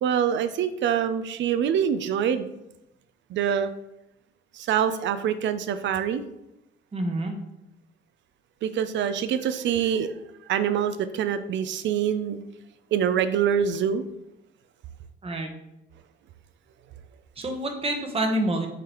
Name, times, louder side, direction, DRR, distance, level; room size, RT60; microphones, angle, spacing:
voice 1, 0.0-2.5 3.3-3.7 4.5-6.2 8.6-10.1 10.5-12.4 12.9-14.0, right 8 dB, 65° right, 11 dB, 0.4 m, -25 dB
voice 2, 6.9-7.3 15.2-15.5 17.4-18.7, right 1 dB, 30° right, 3 dB, 0.9 m, -27 dB
4.7 x 3.8 x 2.9 m, 0.88 s
cardioid pair, 90°, 20 cm